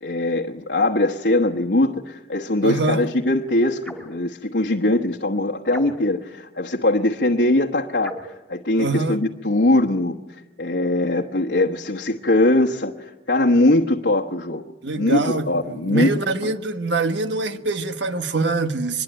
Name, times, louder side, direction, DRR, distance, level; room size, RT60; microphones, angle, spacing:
voice 1, 0.0-14.6 15.0-16.1 16.4-16.5, left 1 dB, 70° left, 1.3 m, -21 dB
voice 2, 2.6-3.1 8.8-9.2 14.8-19.0, right 3 dB, 70° right, 1.5 m, -24 dB
sound 1, 3.8-4.2 5.7-6.3 8.0-8.4, equal, ahead, 2.8 m, -37 dB
24.5 x 21.5 x 9.0 m
head